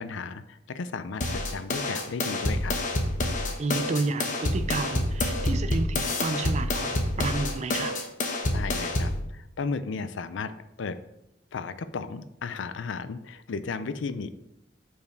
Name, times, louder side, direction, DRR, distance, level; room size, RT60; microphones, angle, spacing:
voice 1, 0.0-2.8 8.5-11.0 11.5-14.3, left 4 dB, 80° left, 12 dB, 0.5 m, -34 dB
sound 1, 1.2-9.2, left 1 dB, 45° left, 0.9 m, -28 dB
voice 2, 3.6-8.0, right 3 dB, 40° right, 10 dB, 0.4 m, -31 dB
5.4 x 4.7 x 4.6 m, 0.87 s
head